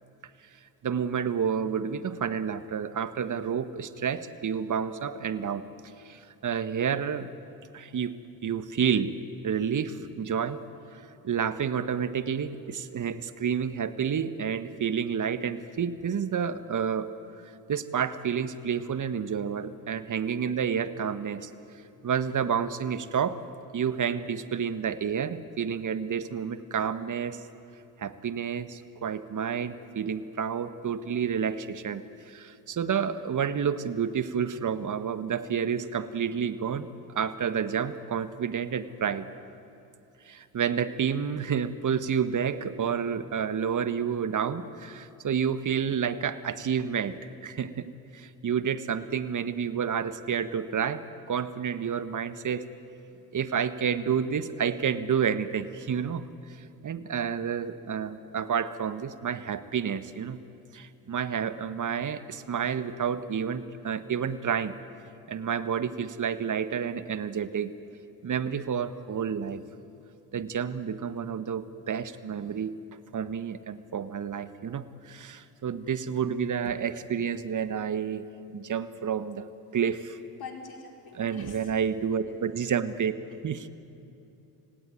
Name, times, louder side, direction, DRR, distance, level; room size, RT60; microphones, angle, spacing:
voice 1, 0.8-5.7 6.0-7.3 7.7-9.2 9.4-10.6 11.2-17.1 17.4-21.5 22.0-23.4 23.7-27.4 28.0-36.9 37.1-39.3 40.2-52.7 53.3-56.3 56.6-60.4 60.7-64.8 65.3-67.7 68.2-69.6 70.3-72.8 73.1-78.3 78.5-79.5 79.7-80.2 81.1-83.1 83.4-83.7, right 7 dB, 35° right, 13 dB, 1.5 m, -30 dB
voice 2, 80.4-81.7 82.2-82.4, left 4 dB, 45° left, 2 dB, 4.8 m, -44 dB
30.0 x 18.0 x 9.3 m, 2.8 s
hypercardioid pair, 55°, 50 cm